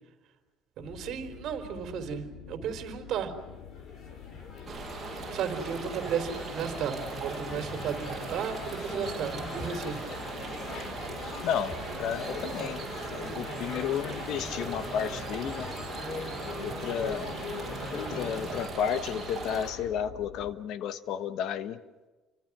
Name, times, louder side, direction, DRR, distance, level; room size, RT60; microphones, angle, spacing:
sound 1, 0.8-20.5, left 9 dB, 90° left, 2.7 m, -47 dB
voice 1, 0.8-3.3 5.3-10.0 16.7-16.8, right 7 dB, 55° right, 7 dB, 3.8 m, -34 dB
sound 2, 3.4-18.7, left 2 dB, 45° left, 5.9 m, -40 dB
sound 3, 4.7-19.7, right 4 dB, 20° right, 7.1 m, -40 dB
voice 2, 11.4-15.7 16.6-17.3 17.9-21.8, left 8 dB, 60° left, 13 dB, 1.3 m, -32 dB
30.0 x 24.5 x 6.2 m, 1.3 s
cardioid pair, 150°, 0 cm